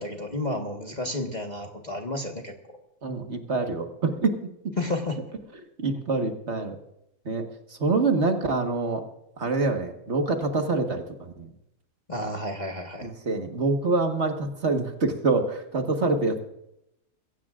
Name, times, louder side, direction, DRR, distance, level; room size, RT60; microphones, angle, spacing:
voice 1, 0.0-2.5 4.8-5.2 12.1-13.1, left 1 dB, 30° left, 1 dB, 1.5 m, -31 dB
voice 2, 3.0-4.7 5.8-6.8 7.2-7.4 7.7-9.1 9.4-11.5 13.0-16.4, right 3 dB, 45° right, 4 dB, 1.8 m, -26 dB
22.5 x 16.5 x 2.5 m, 0.81 s
omnidirectional pair, 1.6 m